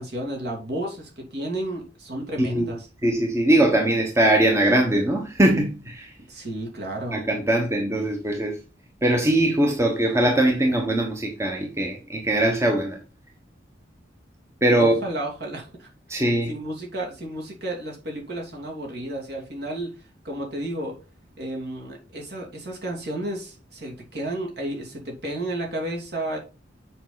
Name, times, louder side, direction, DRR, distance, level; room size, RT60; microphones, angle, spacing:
voice 1, 0.0-2.9 6.3-7.2 14.8-16.2 16.5-20.9 21.4-26.4, right 1 dB, 60° right, 2.7 m, -32 dB
voice 2, 3.0-6.1 7.1-8.6 9.0-13.0 14.6-14.9 16.1-16.5, right 1 dB, 15° right, 1.1 m, -21 dB
7.1 x 5.3 x 4.0 m
head